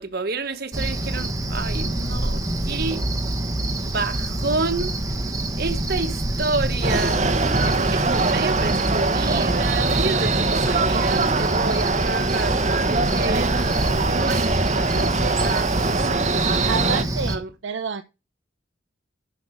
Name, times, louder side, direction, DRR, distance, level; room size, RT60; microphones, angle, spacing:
voice 1, 0.0-3.0 3.8-4.9 5.5-7.2 7.6-13.5 13.9-16.3 17.3-17.5, right 3 dB, 50° right, 1.2 m, -29 dB
Cricket, 0.7-17.4, right 1 dB, 20° right, 1.1 m, -26 dB
sound 1, 6.8-17.0, right 3 dB, 35° right, 0.9 m, -23 dB
voice 2, 16.6-18.0, right 5 dB, 70° right, 0.6 m, -29 dB
7.9 x 5.9 x 6.5 m
head